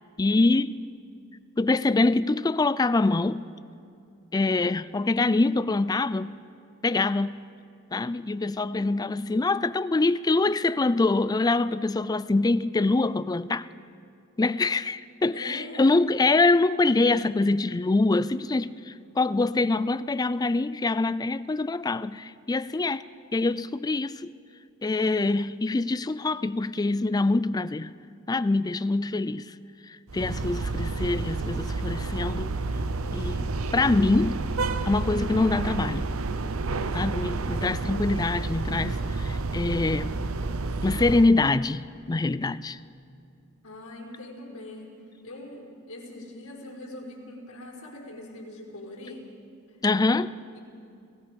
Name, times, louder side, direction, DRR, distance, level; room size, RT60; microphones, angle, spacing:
voice 1, 0.2-0.8 1.6-3.5 4.3-6.4 6.8-7.5 7.9-13.7 14.4-23.0 23.3-24.3 24.8-27.9 28.3-29.5 29.9-32.5 33.1-34.5 34.9-36.1 36.9-40.1 40.8-42.8 49.8-50.4, left 3 dB, 20° left, 0.4 m, -24 dB
voice 2, 15.3-16.0 30.3-30.6 43.6-44.9 45.2-49.3 49.7-49.8 50.5-50.6, left 1 dB, 90° left, 4.9 m, -42 dB
sound 1, 30.1-41.3, right 3 dB, 75° right, 0.8 m, -30 dB
29.5 x 18.0 x 5.3 m
head